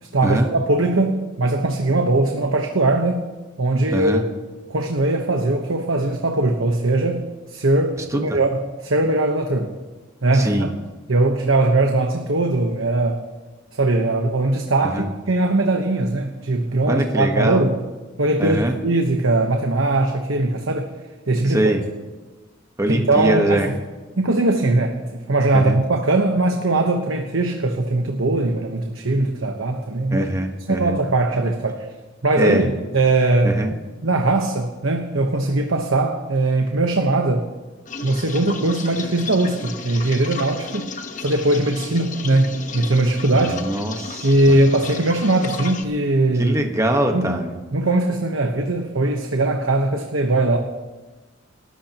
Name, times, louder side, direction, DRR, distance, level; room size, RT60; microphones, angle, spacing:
voice 1, 0.1-3.2 3.6-4.3 4.7-7.2 7.5-9.7 10.2-10.7 11.1-13.2 13.7-17.7 18.2-20.9 21.3-21.7 22.9-23.7 24.2-25.0 25.3-30.3 30.7-31.9 32.2-37.5 38.0-40.9 41.2-43.6 44.2-46.5 47.1-47.4 47.7-50.6, right 2 dB, 90° right, 3 dB, 1.2 m, -20 dB
voice 2, 3.9-4.2 8.1-8.4 10.3-10.7 14.9-15.1 16.9-17.6 18.4-18.7 21.5-21.8 22.8-23.7 25.5-25.8 30.1-31.0 32.4-32.7 33.4-33.7 43.3-44.6 46.4-47.6, right 1 dB, 15° right, 3 dB, 1.4 m, -22 dB
sound 1, 37.9-45.8, left 4 dB, 40° left, 1.1 m, -34 dB
28.5 x 14.0 x 3.0 m, 1.2 s
head